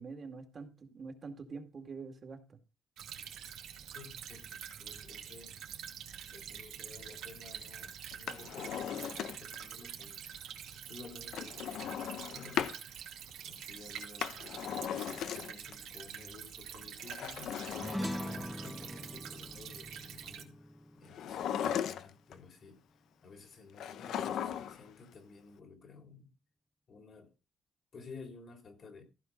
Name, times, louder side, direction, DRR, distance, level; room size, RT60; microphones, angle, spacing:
voice 1, 0.0-2.4 21.6-21.8, right 4 dB, 45° right, 2.3 m, -45 dB
Stream / Trickle dribble, 3.0-20.4, right 9 dB, 80° right, 2.2 m, -46 dB
voice 2, 3.9-5.7 6.3-10.3 10.9-12.7 13.4-14.4 14.7-17.6 18.0-20.6 21.0-22.8 23.2-26.3 26.9-27.3 27.9-29.0, left 4 dB, 50° left, 3.4 m, -53 dB
Drawer open or close, 8.1-9.6 11.3-12.8 14.0-15.7 17.0-18.7 21.1-22.3 23.8-24.9 25.1-25.2, left 9 dB, 75° left, 0.9 m, -37 dB
sound 1, 17.7-22.4, equal, ahead, 0.6 m, -42 dB
15.0 x 5.0 x 5.3 m
cardioid pair, 90°, 0 cm